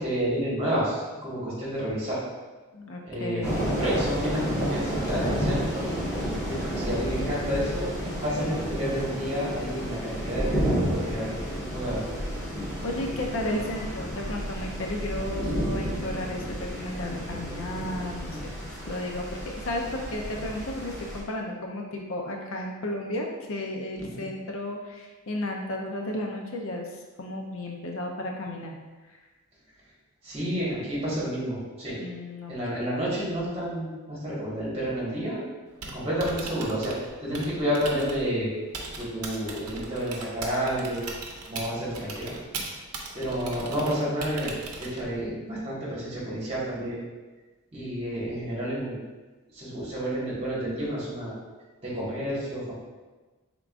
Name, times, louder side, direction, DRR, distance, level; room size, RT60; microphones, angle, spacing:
voice 1, 0.0-2.2 3.1-5.9 6.5-7.9 8.2-11.4 11.7-12.0 24.0-24.2 30.2-32.0 32.5-35.4 35.9-36.9 37.2-38.5 39.0-41.1 41.5-42.3 43.1-44.5 44.8-47.0 47.7-49.0 49.5-51.3 51.8-52.7, equal, 25° right, -8 dB, 1.4 m, -30 dB
voice 2, 2.7-3.8 12.8-18.4 18.9-26.9 27.2-28.7 30.4-30.6 31.9-32.5, left 1 dB, 60° left, 1 dB, 0.5 m, -33 dB
sound 1, 3.4-21.2, equal, 15° left, 1.1 m, -31 dB
Typing, 35.7-45.2, right 3 dB, 85° right, 0.6 m, -39 dB
4.6 x 3.7 x 2.4 m, 1.3 s
head